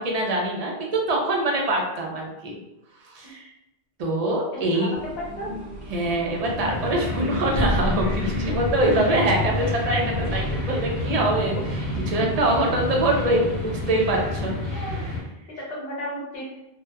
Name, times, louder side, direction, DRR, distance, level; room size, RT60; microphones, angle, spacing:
voice 1, 0.0-2.6 3.1-3.5 4.0-4.9 5.9-14.5, right 1 dB, 50° right, -1 dB, 0.5 m, -24 dB
voice 2, 4.5-5.5 14.7-15.0 15.6-16.4, equal, 65° left, -4 dB, 1.0 m, -34 dB
sound 1, 4.9-14.5, left 1 dB, 80° right, 1.0 m, -34 dB
sound 2, 6.3-15.2, left 2 dB, 30° left, 1.0 m, -29 dB
2.7 x 2.1 x 2.3 m, 0.93 s
omnidirectional pair, 1.1 m